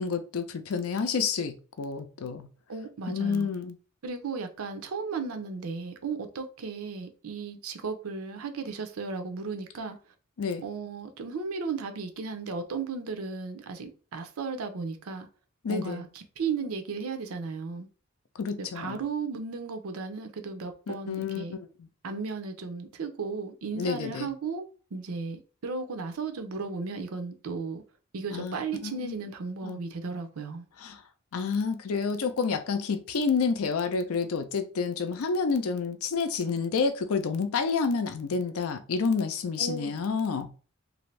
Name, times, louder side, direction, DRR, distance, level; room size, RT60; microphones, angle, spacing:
voice 1, 0.0-2.5 3.1-3.8 10.4-10.6 15.6-16.1 18.4-19.0 20.9-21.7 23.8-24.3 28.3-29.2 29.6-29.8 30.8-31.0 31.3-40.5, left 5 dB, 80° left, 0.5 m, -29 dB
voice 2, 2.7-3.5 4.0-10.0 10.6-15.3 15.7-17.9 18.6-21.6 22.0-27.8 28.1-30.7 39.6-39.9, right 4 dB, 85° right, 0.6 m, -35 dB
2.6 x 2.5 x 3.2 m
head